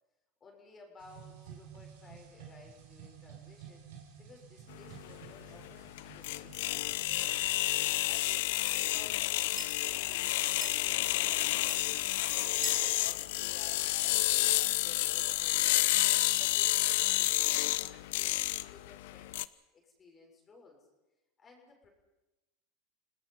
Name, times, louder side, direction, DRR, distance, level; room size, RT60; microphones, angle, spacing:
voice 1, 0.4-7.4 8.0-9.3 9.6-11.9 12.3-15.9 16.3-19.3 19.7-20.8 21.4-21.9, left 3 dB, 30° left, 1 dB, 6.1 m, -57 dB
sound 1, 1.0-7.8, right 9 dB, 80° right, 6.0 m, -52 dB
sound 2, 4.7-19.4, left 18 dB, 75° left, 0.6 m, -30 dB
sound 3, 6.5-14.4, right 1 dB, 5° right, 5.2 m, -50 dB
29.0 x 18.5 x 5.7 m, 1.0 s
hypercardioid pair, 105°, 0 cm